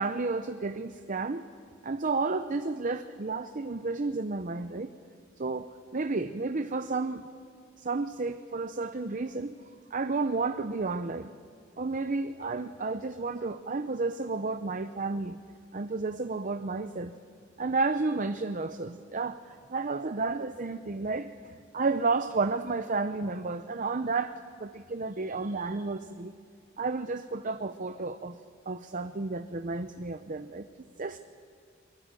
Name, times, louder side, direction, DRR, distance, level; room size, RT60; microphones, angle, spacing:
voice 1, 0.0-1.5 1.8-4.9 5.4-7.2 7.8-9.6 9.9-11.3 11.8-15.4 15.7-17.1 17.6-24.3 24.6-26.3 26.8-28.4 28.7-30.7 31.0-31.2, right 3 dB, 40° right, 10 dB, 0.7 m, -31 dB
23.5 x 21.5 x 9.0 m, 2.1 s
head